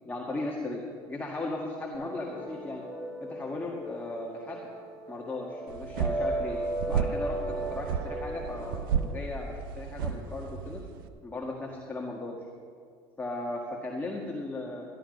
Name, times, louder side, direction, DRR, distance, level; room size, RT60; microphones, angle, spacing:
voice 1, 0.1-2.8 3.2-4.7 5.1-6.6 6.9-10.8 11.2-12.4 13.2-14.8, left 2 dB, 15° left, -1 dB, 1.8 m, -36 dB
sound 1, 1.9-8.8, right 1 dB, 5° right, 4.4 m, -36 dB
sound 2, 5.7-11.1, right 7 dB, 85° right, 0.7 m, -33 dB
13.0 x 11.5 x 5.3 m, 2.1 s
supercardioid pair, 85°, 11 cm